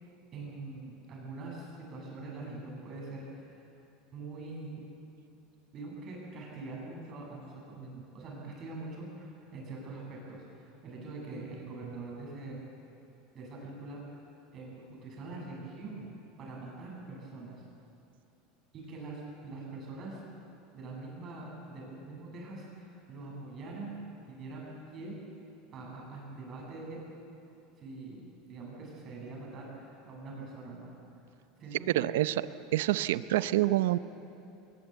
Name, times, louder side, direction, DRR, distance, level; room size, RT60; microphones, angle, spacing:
voice 1, 0.3-3.6 4.1-4.9 5.7-12.6 13.3-14.0 14.5-16.1 16.4-17.6 18.7-20.2 20.7-24.0 24.3-25.2 25.7-27.0 27.8-30.9 31.6-32.2, right 3 dB, 35° right, -2 dB, 7.6 m, -43 dB
voice 2, 31.9-32.4 32.7-34.0, right 15 dB, 90° right, 15 dB, 0.7 m, -27 dB
21.5 x 20.0 x 8.2 m, 2.9 s
supercardioid pair, 145°, 0 cm